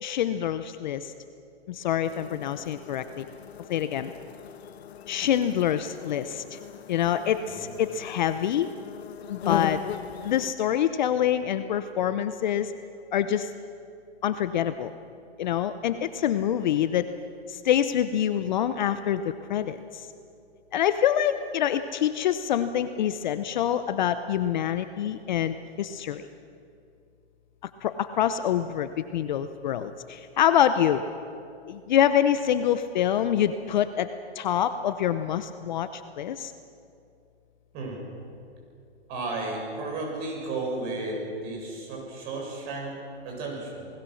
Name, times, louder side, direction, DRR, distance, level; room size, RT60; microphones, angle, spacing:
voice 1, 0.0-1.1 1.7-3.3 3.7-4.1 5.1-6.6 6.9-8.7 9.3-9.8 10.2-12.7 13.1-13.5 14.2-14.9 15.4-17.1 17.5-20.1 20.7-26.3 27.8-31.0 31.7-34.1 34.3-36.5, left 10 dB, 40° left, 11 dB, 0.8 m, -26 dB
sound 1, 2.0-10.5, left 9 dB, 70° left, 1.0 m, -38 dB
voice 2, 37.7-38.1 39.1-43.9, right 2 dB, 25° right, -1 dB, 7.3 m, -34 dB
28.5 x 20.0 x 6.4 m, 2.5 s
hypercardioid pair, 150°, 34 cm